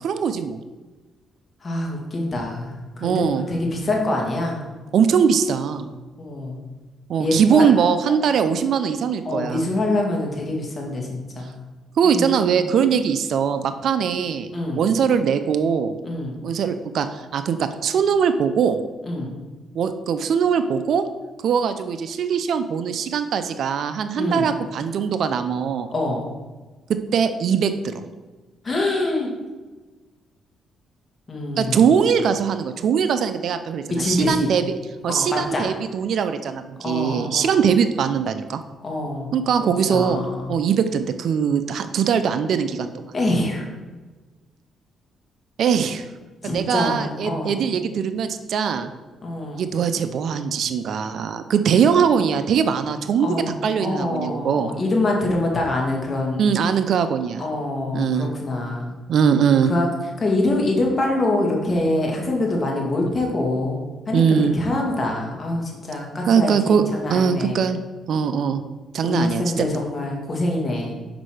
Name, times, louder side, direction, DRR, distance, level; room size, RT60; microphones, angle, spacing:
voice 1, 0.0-0.6 3.0-3.5 4.9-5.9 7.1-9.7 12.0-14.5 14.8-16.0 16.4-18.8 19.7-21.0 21.4-25.9 27.1-28.0 31.6-34.6 35.0-38.6 39.3-42.9 45.6-46.1 46.4-48.9 49.5-54.7 56.4-57.4 57.9-58.3 59.1-59.7 64.1-64.6 66.2-66.8 67.1-67.8 68.1-68.6 68.9-69.7, right 7 dB, 65° right, 10 dB, 0.5 m, -21 dB
voice 2, 1.6-3.2 3.5-4.6 6.2-6.6 7.2-7.7 8.4-8.6 9.3-11.5 12.0-12.5 14.5-14.8 16.0-16.4 19.1-19.3 24.2-24.5 25.9-26.2 28.6-29.3 31.3-31.8 33.9-34.5 35.1-35.6 36.8-37.6 38.8-39.3 39.6-40.5 43.1-43.7 46.4-47.6 49.2-49.6 53.2-56.5 57.4-59.0 59.7-59.9 60.2-67.6 69.0-70.9, left 2 dB, 30° left, -1 dB, 2.0 m, -25 dB
6.0 x 5.4 x 4.9 m, 1.3 s
cardioid pair, 90°, 0 cm